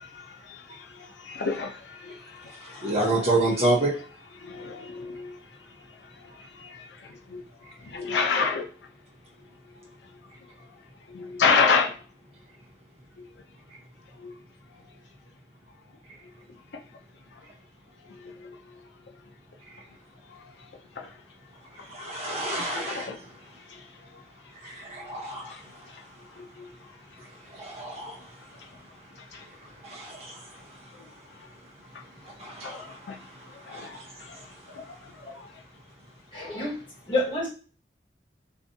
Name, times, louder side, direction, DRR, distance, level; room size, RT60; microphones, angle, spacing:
voice 1, 0.0-3.3 4.4-8.7 9.8-9.9 11.1-12.0 13.2-13.3 14.2-14.4 18.0-18.8 20.3-20.7 20.9-21.1 21.8-21.9 22.7-23.2 23.7-24.2 24.6-26.0 26.3-26.9 28.6-28.7 29.2-29.4 31.4-31.5 32.6-33.2 33.7-34.4 34.7-35.5, left 5 dB, 80° left, 0.5 m, -31 dB
voice 2, 2.6-3.9 21.8-23.1 24.6-25.7 27.2-28.4 29.3-30.9 32.2-34.8, right 2 dB, 35° right, 0.9 m, -30 dB
voice 3, 36.3-36.7 37.1-37.5, left 1 dB, 30° left, 1.4 m, -27 dB
2.6 x 2.4 x 2.6 m
head